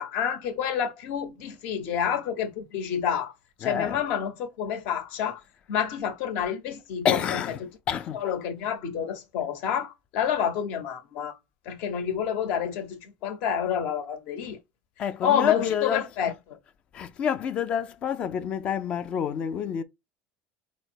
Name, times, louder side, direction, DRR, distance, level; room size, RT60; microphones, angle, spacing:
voice 1, 0.0-3.3 3.6-5.4 5.7-7.2 7.6-7.7 8.1-11.4 11.7-14.6 15.2-16.3, left 8 dB, 60° left, 1.1 m, -28 dB
voice 2, 3.6-4.0 7.0-8.2 15.0-16.1 16.9-19.8, left 8 dB, 35° left, 0.4 m, -28 dB
5.1 x 2.1 x 4.4 m
cardioid pair, 170°, 3 cm